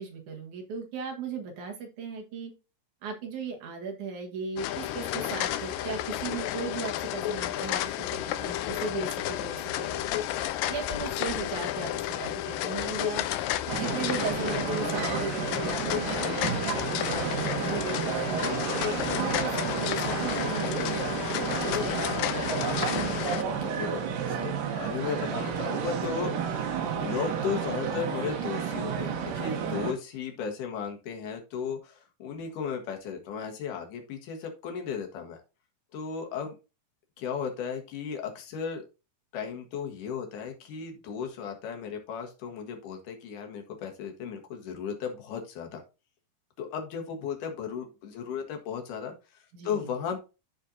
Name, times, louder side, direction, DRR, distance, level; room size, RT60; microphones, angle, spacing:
voice 1, 0.0-2.5 3.0-10.1 10.7-13.2 13.7-18.4 19.0-22.5 22.8-23.0 49.5-49.9, right 5 dB, 65° right, 2 dB, 3.0 m, -37 dB
sound 1, 4.6-23.4, left 13 dB, 85° left, 2.3 m, -31 dB
sound 2, 13.7-29.9, right 7 dB, 80° right, 2.8 m, -31 dB
voice 2, 23.5-26.7 27.0-35.4 35.9-36.5 37.2-38.8 39.3-45.8 46.6-50.2, left 7 dB, 70° left, 4 dB, 3.0 m, -35 dB
13.0 x 4.5 x 2.7 m, 0.29 s
omnidirectional pair, 3.8 m